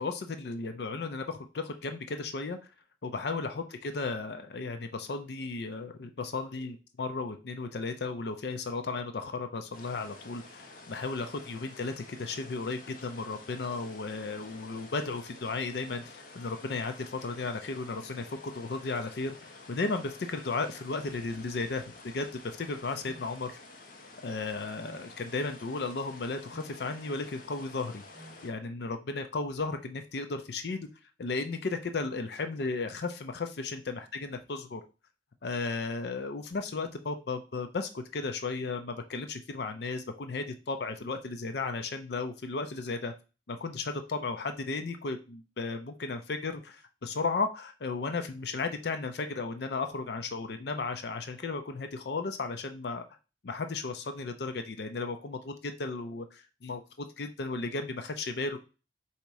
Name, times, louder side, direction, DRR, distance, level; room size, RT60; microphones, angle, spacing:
voice 1, 0.0-2.6 3.0-19.4 19.7-23.6 24.2-28.0 28.4-30.9 31.2-34.8 35.4-43.1 43.5-53.0 53.4-58.6, left 3 dB, 65° left, 8 dB, 0.5 m, -35 dB
sound 1, 9.7-28.5, left 2 dB, 50° left, 0.9 m, -50 dB
sound 2, 23.0-23.3 24.7-25.0 26.5-26.8 28.1-28.4, right 2 dB, 20° right, 1.4 m, -51 dB
4.0 x 2.8 x 4.6 m, 0.32 s
head